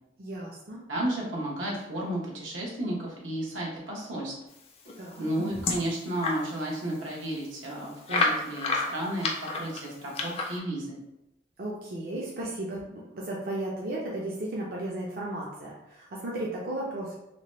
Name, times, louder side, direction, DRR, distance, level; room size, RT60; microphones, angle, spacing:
voice 1, 0.2-0.8 5.0-5.3 11.6-17.2, right 1 dB, 50° right, -4 dB, 0.4 m, -35 dB
voice 2, 0.9-4.3 5.2-11.0, right 1 dB, 85° right, -3 dB, 0.9 m, -33 dB
sound 1, 4.9-6.4 6.9-7.0 7.2-7.3 8.1-10.6, left 3 dB, 30° left, 0.3 m, -30 dB
2.9 x 2.1 x 3.0 m, 0.92 s
head